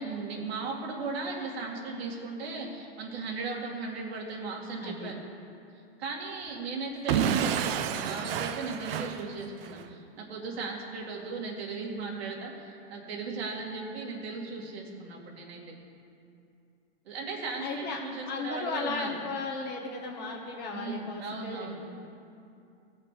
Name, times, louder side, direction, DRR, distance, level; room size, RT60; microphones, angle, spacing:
voice 1, 0.0-5.2 6.0-15.8 17.1-19.1 20.7-21.8, right 4 dB, 85° right, -1 dB, 2.3 m, -37 dB
voice 2, 4.8-5.1 17.6-18.0 18.3-21.9, left 4 dB, 30° left, -1 dB, 1.4 m, -35 dB
Explosion / Shatter, 7.1-9.9, right 9 dB, 65° right, 0.7 m, -29 dB
17.0 x 5.8 x 5.0 m, 2.5 s
supercardioid pair, 140°, 31 cm